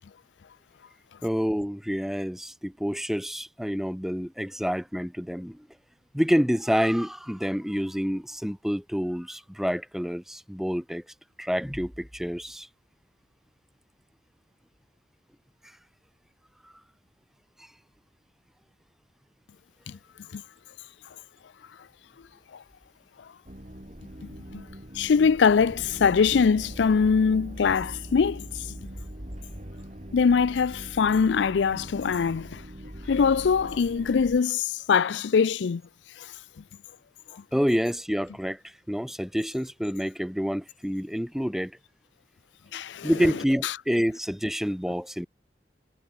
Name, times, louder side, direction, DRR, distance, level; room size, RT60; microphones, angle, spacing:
voice 1, 1.2-5.7 6.1-11.0 11.4-12.7 37.5-41.8 43.0-45.3, equal, ahead, 2.3 m, -28 dB
sound 1, 23.5-34.4, equal, 40° right, 4.1 m, -41 dB
voice 2, 24.9-28.7 30.1-32.6 33.1-35.8 36.2-36.3 42.7-43.1 43.6-43.7, left 6 dB, 90° left, 0.4 m, -23 dB
head